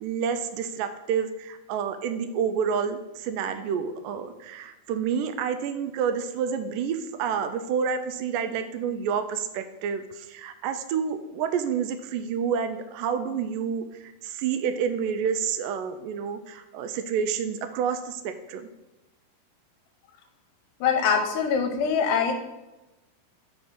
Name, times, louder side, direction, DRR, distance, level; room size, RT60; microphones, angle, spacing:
voice 1, 0.0-18.7, right 7 dB, 80° right, 9 dB, 2.1 m, -29 dB
voice 2, 20.8-22.4, left 6 dB, 80° left, 5 dB, 2.2 m, -23 dB
5.5 x 4.2 x 5.9 m, 1.0 s
omnidirectional pair, 4.0 m